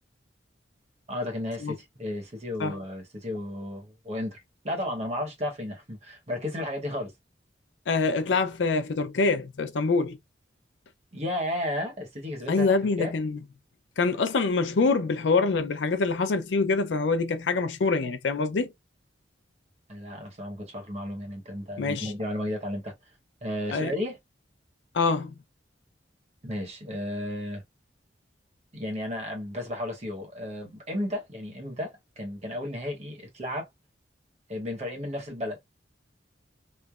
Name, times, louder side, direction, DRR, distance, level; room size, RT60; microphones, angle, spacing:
voice 1, 1.1-4.4 4.6-7.1 11.1-12.7 13.0-13.1 19.9-22.9 23.4-24.2 26.4-27.6 28.7-33.7 34.5-35.6, left 1 dB, 35° right, 1.1 m, -33 dB
voice 2, 7.9-10.2 12.5-13.4 14.0-18.7 21.8-22.1 23.7-23.9 24.9-25.3, left 4 dB, 85° left, 0.5 m, -25 dB
3.2 x 2.1 x 2.2 m
head